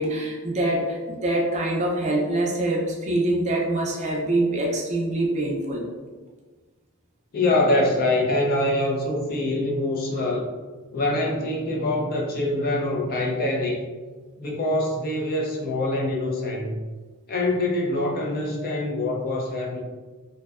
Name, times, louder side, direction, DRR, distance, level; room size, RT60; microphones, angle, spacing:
voice 1, 0.0-5.8, right 1 dB, 30° right, -2 dB, 0.4 m, -24 dB
voice 2, 7.3-10.5 10.9-13.8 14.4-16.8 17.3-19.8, left 1 dB, 45° left, -1 dB, 0.4 m, -24 dB
2.6 x 2.1 x 2.3 m, 1.4 s
head